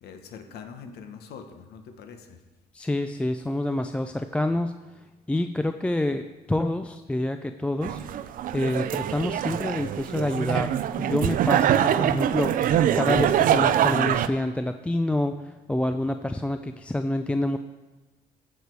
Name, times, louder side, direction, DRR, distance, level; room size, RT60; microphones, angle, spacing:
voice 1, 0.0-2.4, left 6 dB, 70° left, 6 dB, 1.2 m, -43 dB
voice 2, 2.7-8.0 8.5-17.6, left 1 dB, 5° left, 7 dB, 0.3 m, -27 dB
sound 1, 7.8-14.3, right 10 dB, 55° right, 0.5 m, -24 dB
15.0 x 5.1 x 4.7 m, 1.2 s
cardioid pair, 110°, 17 cm